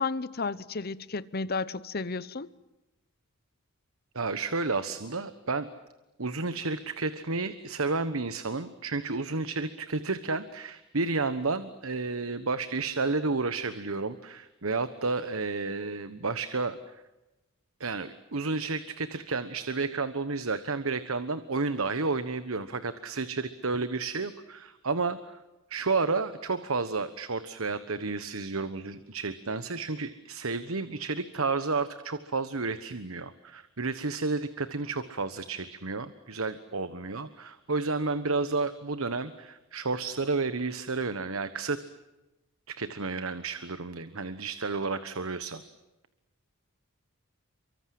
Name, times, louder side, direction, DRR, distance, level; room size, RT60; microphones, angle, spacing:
voice 1, 0.0-2.5, left 4 dB, 45° left, 0.9 m, -32 dB
voice 2, 4.1-5.7 6.2-17.0 17.8-25.4 25.7-41.8 42.7-45.6, right 3 dB, 75° right, 1.2 m, -31 dB
29.5 x 24.5 x 7.8 m
head